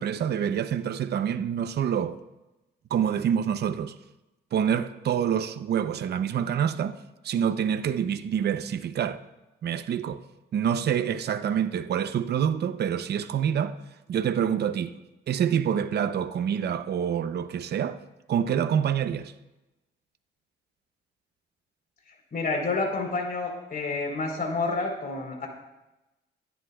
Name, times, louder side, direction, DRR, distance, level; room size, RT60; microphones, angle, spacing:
voice 1, 0.0-2.2 2.9-4.0 4.5-7.0 7.2-9.2 9.6-10.2 10.5-13.8 14.1-15.0 15.3-18.0 18.3-19.3, right 8 dB, 55° right, 0.7 m, -26 dB
voice 2, 22.3-25.5, left 3 dB, 50° left, 4.0 m, -29 dB
25.0 x 10.0 x 2.4 m
cardioid pair, 90°, 20 cm